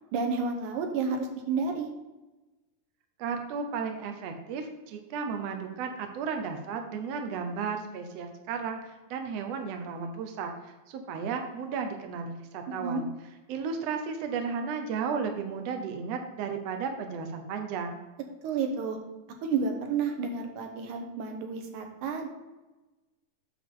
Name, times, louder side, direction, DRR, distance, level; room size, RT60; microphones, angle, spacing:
voice 1, 0.1-1.9 12.8-13.0 18.4-19.0 19.4-22.3, right 5 dB, 85° right, 4 dB, 2.5 m, -30 dB
voice 2, 3.2-8.8 9.1-13.1 13.5-18.0, right 5 dB, 65° right, 5 dB, 1.9 m, -34 dB
8.4 x 6.9 x 3.8 m, 1.1 s
omnidirectional pair, 3.4 m